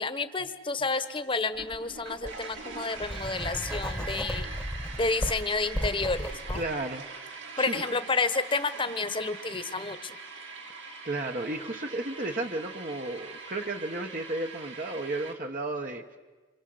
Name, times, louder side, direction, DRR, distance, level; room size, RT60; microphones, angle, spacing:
voice 1, 0.0-4.5 5.0-6.6 7.6-10.1, left 3 dB, 25° left, 11 dB, 1.3 m, -30 dB
sound 1, 1.5-15.3, right 4 dB, 75° right, 3.8 m, -42 dB
Writing, 1.6-1.8 2.2-6.6, equal, 5° left, 1.3 m, -34 dB
voice 2, 6.5-7.2 7.6-7.9 11.0-16.0, right 2 dB, 45° right, 3 dB, 1.3 m, -33 dB
27.5 x 26.0 x 7.9 m, 1.3 s
head